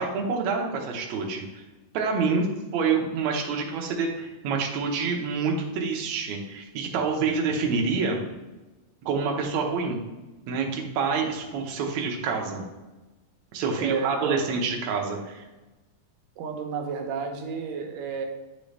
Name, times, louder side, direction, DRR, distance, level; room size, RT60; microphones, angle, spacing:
voice 1, 0.0-1.6 1.9-2.5 2.7-8.2 9.0-10.0 10.5-12.6 13.5-15.4, right 5 dB, 65° right, 0 dB, 2.0 m, -27 dB
voice 2, 13.8-14.4 16.4-18.3, right 5 dB, 85° right, 4 dB, 2.4 m, -31 dB
10.5 x 3.8 x 3.3 m, 1.1 s
omnidirectional pair, 3.8 m